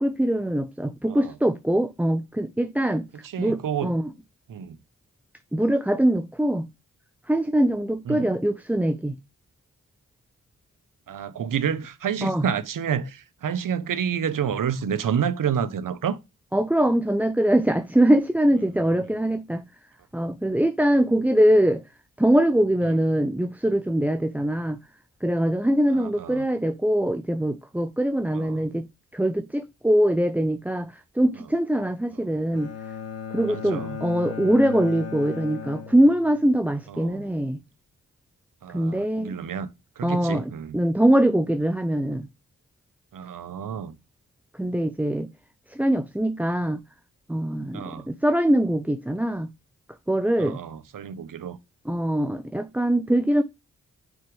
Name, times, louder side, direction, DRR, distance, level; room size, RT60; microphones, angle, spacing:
voice 1, 0.0-3.1 3.4-4.1 5.5-6.7 7.3-9.1 12.2-12.4 16.5-19.7 20.1-21.8 22.2-24.8 25.2-28.9 29.1-32.7 33.3-37.6 38.7-39.4 40.0-42.3 44.5-45.3 45.7-46.8 47.3-49.5 50.1-50.6 51.9-53.4, right 1 dB, 5° right, 0.6 m, -23 dB
voice 2, 3.2-3.9 4.5-4.8 8.1-8.3 11.1-16.2 25.9-26.4 28.3-28.6 33.5-34.0 36.9-37.3 38.6-39.7 40.0-40.8 43.1-44.0 47.7-48.1 50.4-51.6, right 8 dB, 75° right, 1.0 m, -29 dB
Bowed string instrument, 32.5-36.6, left 7 dB, 50° left, 1.7 m, -36 dB
5.9 x 5.5 x 3.3 m
cardioid pair, 50°, 33 cm